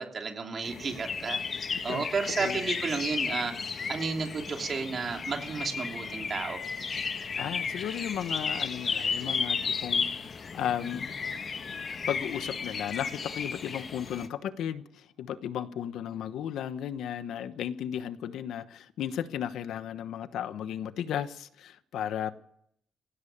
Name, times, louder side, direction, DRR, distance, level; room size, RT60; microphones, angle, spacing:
voice 1, 0.0-3.5 3.9-6.6, right 5 dB, 35° right, 2.9 m, -32 dB
sound 1, 0.6-14.3, left 5 dB, 35° left, 1.4 m, -34 dB
voice 2, 7.4-11.1 12.1-22.3, left 9 dB, 75° left, 1.1 m, -35 dB
23.5 x 16.5 x 8.8 m
cardioid pair, 170°, 0 cm